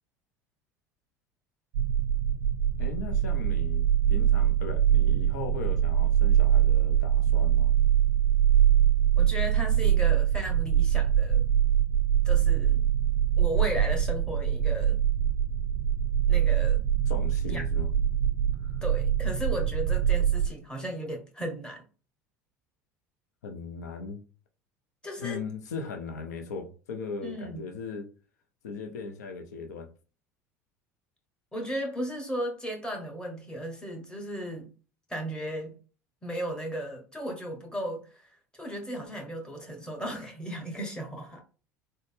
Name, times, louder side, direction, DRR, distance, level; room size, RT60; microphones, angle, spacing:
sound 1, 1.7-20.5, right 9 dB, 70° right, 0.4 m, -23 dB
voice 1, 2.8-7.7 17.1-17.9 18.6-18.8 23.4-24.2 25.2-28.1 28.6-29.9, left 5 dB, 80° left, 0.5 m, -38 dB
voice 2, 9.2-11.4 12.2-12.9 13.4-15.0 16.3-16.8 17.5-17.7 18.8-21.8 25.0-25.4 27.2-27.7 31.5-34.7 35.1-35.8 36.2-41.4, equal, 10° left, 1.4 m, -35 dB
3.8 x 2.1 x 3.5 m
hypercardioid pair, 75°, 9 cm